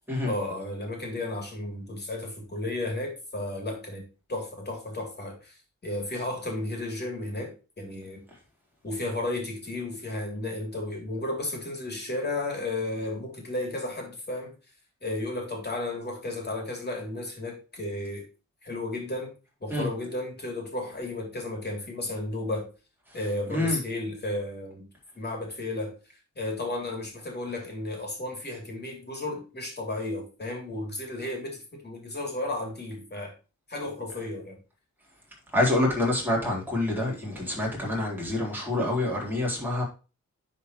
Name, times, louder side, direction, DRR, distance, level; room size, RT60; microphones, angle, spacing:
voice 1, 0.3-4.0 4.3-8.2 8.8-14.5 15.0-18.2 18.6-19.3 19.6-22.7 23.1-24.9 25.1-25.9 26.3-33.3 33.7-34.6, left 2 dB, 35° left, 3.2 m, -33 dB
voice 2, 23.5-23.8 35.5-39.8, left 1 dB, 5° right, 4.0 m, -27 dB
10.5 x 4.6 x 3.2 m
wide cardioid pair, 105°, 30 cm